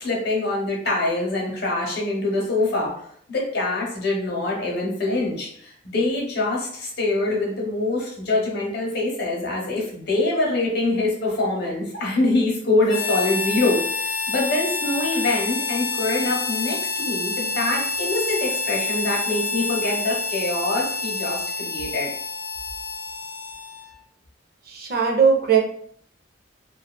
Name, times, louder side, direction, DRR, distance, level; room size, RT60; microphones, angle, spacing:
voice 1, 0.0-22.1, left 2 dB, 60° left, -3 dB, 0.8 m, -24 dB
Harmonica, 12.9-24.0, left 4 dB, 90° left, 0.5 m, -28 dB
voice 2, 24.7-25.6, right 6 dB, 50° right, 1 dB, 0.5 m, -19 dB
2.6 x 2.4 x 2.2 m, 0.64 s
head